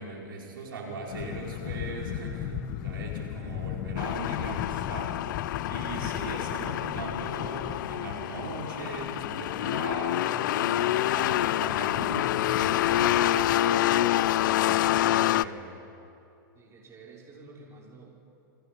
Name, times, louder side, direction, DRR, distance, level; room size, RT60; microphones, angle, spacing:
voice 1, 0.0-5.3 5.7-14.0 14.3-15.7, right 3 dB, 85° right, -1 dB, 5.1 m, -39 dB
sound 1, 1.1-10.1, left 12 dB, 45° left, 1.4 m, -37 dB
sound 2, 4.0-15.4, left 14 dB, 65° left, 0.6 m, -27 dB
voice 2, 16.6-18.1, right 3 dB, 25° right, -2 dB, 5.7 m, -50 dB
27.5 x 24.0 x 5.5 m, 2.8 s
hypercardioid pair, 120°, 11 cm